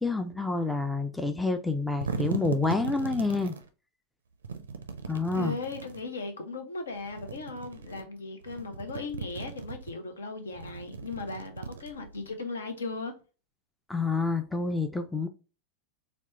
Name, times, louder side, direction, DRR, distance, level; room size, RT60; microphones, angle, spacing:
voice 1, 0.0-3.5 5.1-5.6 13.9-15.3, left 3 dB, 5° left, 0.4 m, -28 dB
sound 1, 1.7-3.6 4.4-6.1 7.0-8.0 8.4-9.9 10.5-12.3, right 5 dB, 70° right, 0.4 m, -38 dB
voice 2, 5.3-13.2, left 3 dB, 70° left, 0.6 m, -37 dB
4.2 x 2.1 x 2.9 m
figure-of-eight pair, 90°, 0 cm